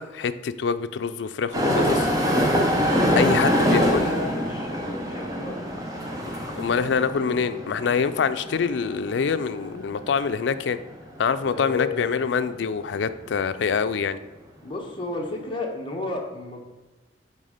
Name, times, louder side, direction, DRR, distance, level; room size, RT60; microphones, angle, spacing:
voice 1, 0.0-2.1 3.2-4.1 6.3-10.8 11.2-14.2, left 6 dB, 75° left, 11 dB, 0.4 m, -25 dB
sound 1, 1.5-11.1 11.7-11.8 12.6-12.7, equal, 20° right, 1.0 m, -25 dB
voice 2, 2.8-5.7 11.4-12.1 14.6-16.6, left 2 dB, 30° left, 0 dB, 1.2 m, -33 dB
8.2 x 3.6 x 5.0 m, 1.1 s
head